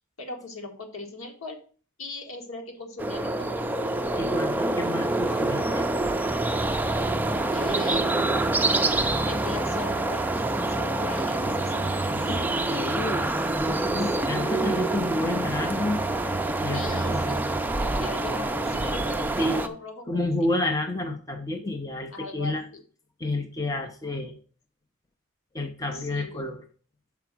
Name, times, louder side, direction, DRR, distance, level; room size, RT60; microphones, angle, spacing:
voice 1, 0.2-1.6 2.0-3.6 7.5-10.3 10.7-12.9 14.1-14.3 16.7-17.4 17.7-20.3 22.1-22.8 25.9-26.5, left 2 dB, 75° left, 3 dB, 1.7 m, -40 dB
sound 1, 3.0-19.7, right 2 dB, 10° right, 0.4 m, -26 dB
voice 2, 4.2-5.8 12.1-12.4 12.7-16.0 16.6-17.3 18.0-18.1 19.4-19.6 20.1-22.6 23.2-24.4 25.5-26.6, left 2 dB, 15° left, 5 dB, 0.7 m, -30 dB
5.9 x 5.0 x 6.0 m, 0.40 s
head